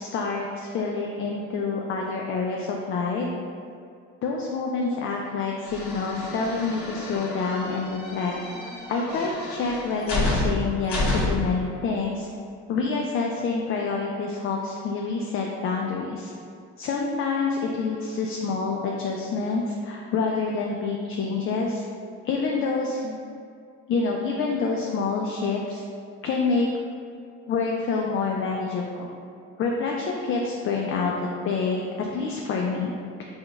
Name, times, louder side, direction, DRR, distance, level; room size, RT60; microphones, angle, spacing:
voice 1, 0.0-3.3 4.2-8.3 8.9-12.3 12.7-16.3 16.8-21.8 22.2-23.2 23.9-25.8 26.2-26.7 27.5-29.1 29.6-31.1 31.4-32.9, left 4 dB, 45° left, 0 dB, 0.4 m, -27 dB
sound 1, 5.7-11.6, left 2 dB, 90° left, 1.4 m, -30 dB
6.2 x 2.3 x 3.3 m, 2.3 s
cardioid pair, 115°, 29 cm